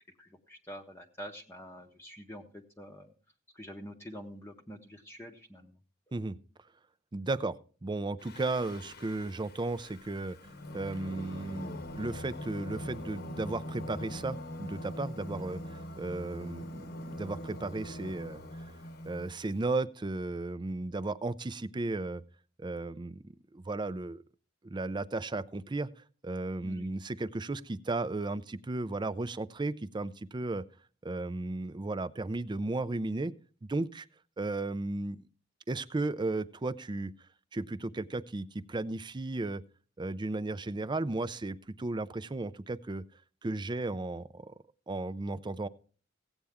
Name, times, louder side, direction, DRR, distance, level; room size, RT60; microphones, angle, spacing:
voice 1, 0.2-3.1 3.5-5.8 26.6-26.9, equal, 15° left, 2 dB, 0.8 m, -47 dB
voice 2, 7.1-10.4 10.7-18.4 19.0-22.2 22.6-23.2 23.5-24.2 24.6-25.9 26.2-30.6 31.0-33.3 33.7-34.1 34.4-35.2 35.7-37.1 37.5-39.6 40.0-43.0 43.4-44.5 44.9-45.7, right 2 dB, 20° right, 15 dB, 0.4 m, -35 dB
Singing, 8.2-19.5, equal, 50° left, 1.0 m, -42 dB
16.0 x 8.6 x 3.5 m, 0.40 s
head